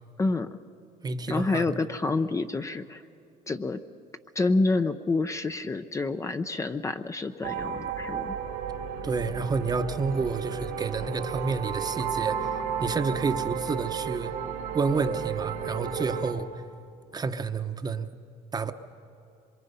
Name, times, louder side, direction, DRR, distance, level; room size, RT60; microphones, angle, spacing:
voice 1, 0.2-0.6 1.3-3.0 3.5-3.8 4.4-8.4, left 3 dB, 20° left, 9 dB, 0.6 m, -28 dB
voice 2, 1.0-1.7 9.0-14.3 14.7-16.6 17.1-18.1 18.5-18.7, right 4 dB, 25° right, 9 dB, 0.9 m, -29 dB
sound 1, 7.4-16.3, right 7 dB, 90° right, 2.8 m, -33 dB
25.5 x 23.0 x 5.5 m, 2.6 s
cardioid pair, 110°, 15 cm